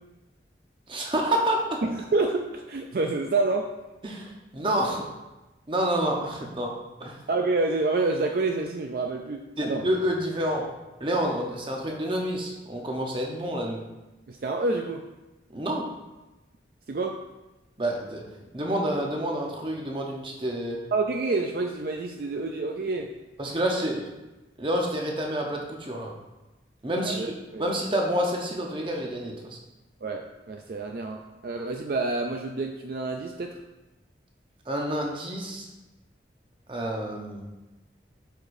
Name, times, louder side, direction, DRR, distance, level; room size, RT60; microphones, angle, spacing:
voice 1, 0.9-1.8 4.0-5.1 5.7-6.7 7.0-7.2 9.6-10.7 11.0-13.8 15.5-15.9 17.8-18.3 18.5-20.8 23.4-24.1 24.6-26.1 26.8-27.2 27.6-29.6 34.7-35.6 36.7-37.4, right 1 dB, 30° right, 0 dB, 0.9 m, -28 dB
voice 2, 1.8-3.7 7.3-9.8 14.3-15.1 16.9-17.2 20.9-23.1 27.0-27.7 30.0-33.6, right 3 dB, 55° right, 3 dB, 0.4 m, -28 dB
9.0 x 4.8 x 2.6 m, 1.1 s
head